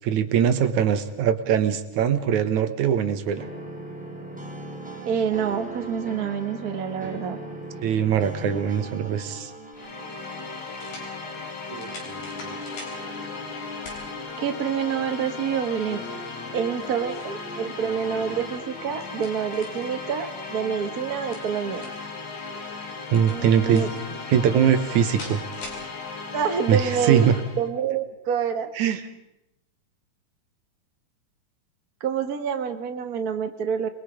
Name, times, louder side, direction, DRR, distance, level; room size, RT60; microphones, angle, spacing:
voice 1, 0.0-3.5 7.8-9.5 11.7-12.0 23.1-23.9 24.3-25.4 26.7-27.3 28.8-29.0, right 8 dB, 70° right, 10 dB, 2.4 m, -22 dB
sound 1, 3.3-19.1, right 1 dB, ahead, 3.2 m, -40 dB
voice 2, 5.0-7.4 14.4-16.0 16.5-21.9 23.3-23.9 26.3-27.3 27.6-28.7 32.0-33.9, right 7 dB, 45° right, 7 dB, 1.2 m, -27 dB
sound 2, 9.5-9.6 10.7-11.1 11.7-13.0 13.8-14.0 14.6-14.7 16.6-17.4 18.7-19.9 21.1-22.1 23.1-24.0 25.0-25.8, left 2 dB, 70° left, 5.9 m, -42 dB
sound 3, 9.7-27.7, left 4 dB, 40° left, 2.3 m, -37 dB
28.5 x 21.5 x 5.1 m, 0.86 s
omnidirectional pair, 3.8 m